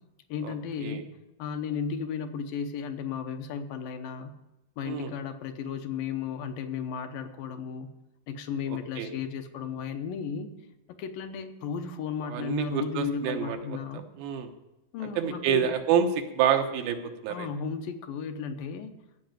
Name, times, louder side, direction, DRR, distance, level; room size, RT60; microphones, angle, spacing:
voice 1, 0.3-4.3 4.8-7.9 8.3-10.5 10.9-14.0 14.9-15.8 17.3-18.9, left 6 dB, 75° left, 6 dB, 2.5 m, -34 dB
voice 2, 8.7-9.1 12.3-13.8 14.2-14.5 15.2-16.1 16.3-17.0 17.2-17.5, right 9 dB, 90° right, 5 dB, 3.0 m, -27 dB
15.0 x 5.7 x 9.0 m, 0.97 s
omnidirectional pair, 4.1 m